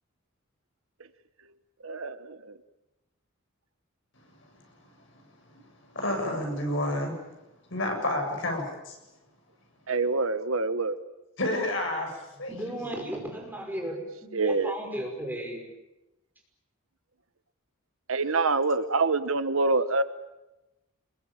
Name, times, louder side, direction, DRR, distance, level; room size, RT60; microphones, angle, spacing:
voice 1, 1.8-2.5 9.9-11.0 14.3-14.7 18.1-20.0, right 3 dB, 70° right, 12 dB, 1.2 m, -26 dB
voice 2, 5.1-7.2 7.7-8.6 11.4-12.9, left 1 dB, 60° left, 3 dB, 7.5 m, -30 dB
voice 3, 12.5-15.6, right 1 dB, 10° right, 1 dB, 5.7 m, -35 dB
27.0 x 22.0 x 9.0 m, 0.99 s
head